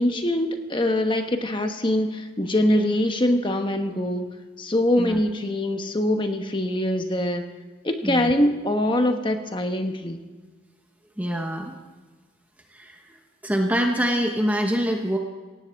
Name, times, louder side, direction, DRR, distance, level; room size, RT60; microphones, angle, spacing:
voice 1, 0.0-4.3 4.6-7.4 7.8-10.2, left 1 dB, 25° left, 6 dB, 1.2 m, -23 dB
voice 2, 11.2-11.7 12.7-13.2 13.4-15.2, equal, 10° right, 2 dB, 1.1 m, -25 dB
18.0 x 17.0 x 3.6 m, 1.4 s
head